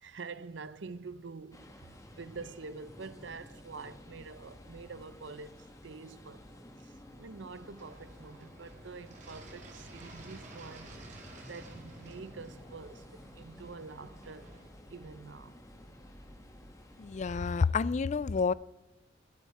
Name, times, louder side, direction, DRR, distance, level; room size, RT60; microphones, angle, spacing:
voice 1, 0.0-6.5 6.8-11.0 11.5-14.5 14.9-15.6, right 4 dB, 70° right, 0.7 m, -46 dB
sound 1, 1.5-17.7, equal, 20° left, 1.4 m, -53 dB
sound 2, 7.7-14.7, right 2 dB, 40° right, 2.8 m, -52 dB
voice 2, 17.0-18.5, left 5 dB, 40° left, 0.3 m, -29 dB
21.5 x 9.4 x 4.2 m
head